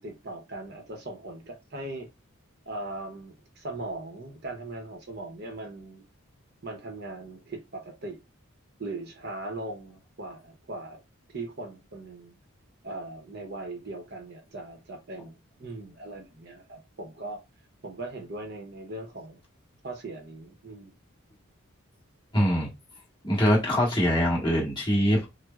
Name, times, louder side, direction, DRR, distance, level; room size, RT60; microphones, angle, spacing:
voice 1, 0.0-2.1 2.7-6.0 6.6-8.2 8.8-11.0 11.3-12.3 12.8-17.4 17.8-19.4 19.8-20.9, right 2 dB, 50° right, 0.8 m, -39 dB
voice 2, 22.3-22.7 23.2-25.3, equal, 20° left, 1.6 m, -23 dB
6.1 x 2.1 x 2.4 m
head